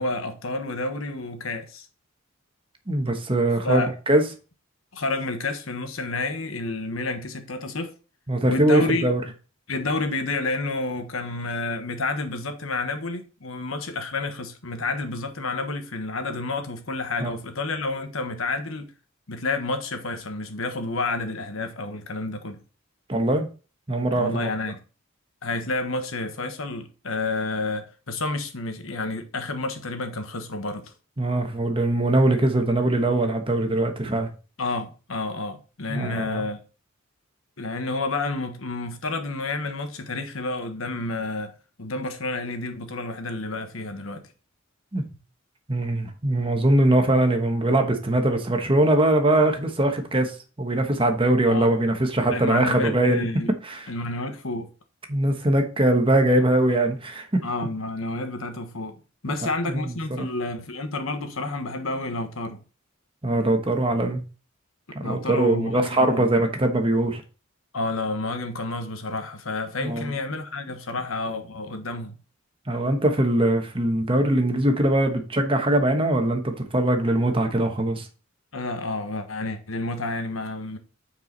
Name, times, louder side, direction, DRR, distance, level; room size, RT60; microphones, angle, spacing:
voice 1, 0.0-1.9 3.6-3.9 4.9-7.9 8.4-9.1 9.7-18.9 19.3-22.6 24.1-24.8 25.4-30.9 34.6-36.6 37.6-41.5 41.8-44.3 51.5-51.7 52.3-53.5 53.9-54.7 57.4-62.6 65.0-66.3 67.7-72.1 78.5-80.8, left 2 dB, 75° left, 1.3 m, -30 dB
voice 2, 2.9-4.2 8.3-9.2 17.2-17.3 23.1-23.5 23.9-24.5 31.2-34.3 35.9-36.4 44.9-45.0 45.7-53.2 53.6-53.9 55.1-57.4 59.3-59.4 59.7-59.9 60.2-60.3 63.2-64.2 64.9-67.2 69.8-70.1 72.7-78.1, right 1 dB, 25° right, 1.2 m, -22 dB
9.0 x 4.8 x 4.0 m
head